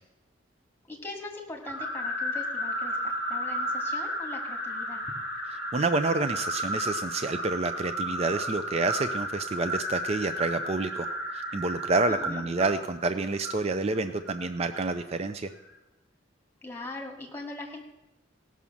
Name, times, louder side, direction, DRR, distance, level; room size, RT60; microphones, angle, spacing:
voice 1, 0.9-5.0 12.1-12.4 16.6-17.9, left 2 dB, 10° left, 1 dB, 2.0 m, -41 dB
sound 1, 1.6-15.0, equal, 10° right, 2.2 m, -33 dB
voice 2, 5.7-11.1 11.3-15.5, right 3 dB, 35° right, 9 dB, 0.4 m, -28 dB
16.5 x 6.1 x 7.1 m, 0.96 s
head